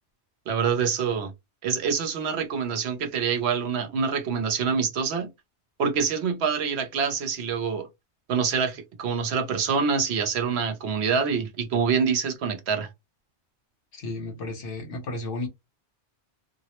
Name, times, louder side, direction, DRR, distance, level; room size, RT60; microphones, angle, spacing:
voice 1, 0.5-1.3 1.6-5.3 5.8-7.9 8.3-12.9, right 6 dB, 70° right, 0.9 m, -26 dB
voice 2, 13.9-15.5, left 2 dB, 55° left, 0.9 m, -33 dB
2.3 x 2.0 x 2.8 m
omnidirectional pair, 1.1 m